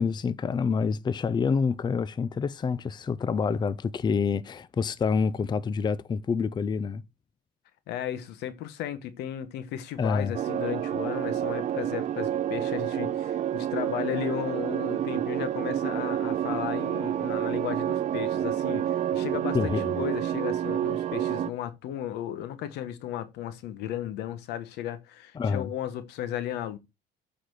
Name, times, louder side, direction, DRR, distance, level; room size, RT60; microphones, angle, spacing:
voice 1, 0.0-7.0 10.0-10.3 19.5-19.9 25.4-25.7, left 5 dB, 25° left, 0.5 m, -27 dB
voice 2, 7.9-26.8, left 11 dB, 85° left, 1.2 m, -35 dB
sound 1, 10.3-21.5, right 11 dB, 45° right, 0.5 m, -29 dB
7.9 x 4.3 x 6.2 m
cardioid pair, 110°, 17 cm